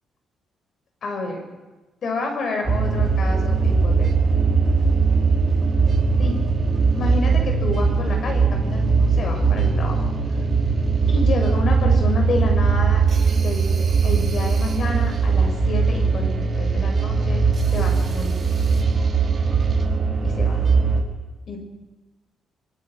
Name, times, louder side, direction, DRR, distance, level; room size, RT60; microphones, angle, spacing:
voice 1, 1.0-1.4 2.0-4.1 6.2-6.3 6.9-10.0 11.1-13.0 13.3-13.7 14.0-17.4 17.7-18.4 20.2-20.6 21.5-21.6, left 3 dB, 55° left, 3 dB, 7.9 m, -29 dB
sound 1, 2.7-21.0, right 4 dB, 35° right, 5.0 m, -20 dB
25.0 x 24.5 x 6.6 m, 1.2 s
cardioid pair, 90°, 0 cm